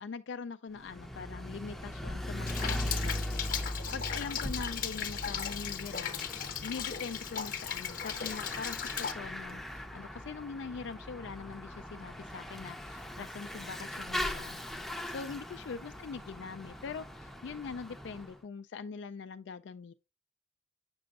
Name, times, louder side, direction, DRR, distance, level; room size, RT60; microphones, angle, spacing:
voice 1, 0.0-6.3 6.6-14.6 15.1-19.9, left 5 dB, 70° left, 0.4 m, -43 dB
Bicycle / Mechanisms, 0.8-18.4, left 1 dB, ahead, 0.5 m, -40 dB
Rain, 2.5-9.1, left 8 dB, 45° left, 0.8 m, -37 dB
7.7 x 6.1 x 2.4 m
head